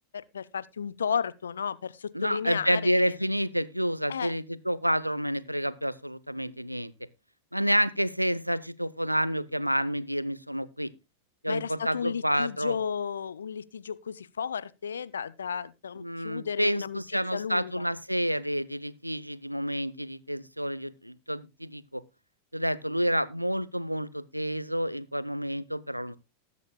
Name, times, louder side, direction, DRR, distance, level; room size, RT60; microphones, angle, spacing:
voice 1, 0.1-3.1 4.1-4.3 11.5-17.0 17.3-17.8, left 7 dB, 70° left, 0.6 m, -33 dB
voice 2, 2.1-6.9 7.5-10.9 11.4-12.8 16.0-22.0 22.5-26.2, equal, 90° right, 0.7 m, -29 dB
19.5 x 8.4 x 2.2 m
figure-of-eight pair, 90°, 0 cm